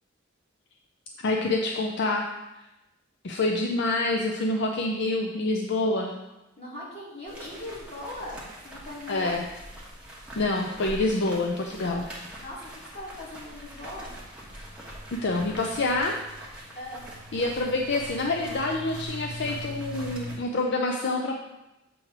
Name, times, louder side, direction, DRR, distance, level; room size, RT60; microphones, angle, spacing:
voice 1, 1.2-2.3 3.2-6.1 9.1-9.4 10.4-12.1 15.1-16.2 17.3-21.4, left 2 dB, 60° left, 1 dB, 0.5 m, -27 dB
voice 2, 6.6-9.3 12.3-14.1 16.7-17.1, left 1 dB, 30° left, -6 dB, 2.1 m, -40 dB
sound 1, 7.3-20.4, equal, 5° right, 1.2 m, -42 dB
7.7 x 3.3 x 5.9 m, 1.0 s
head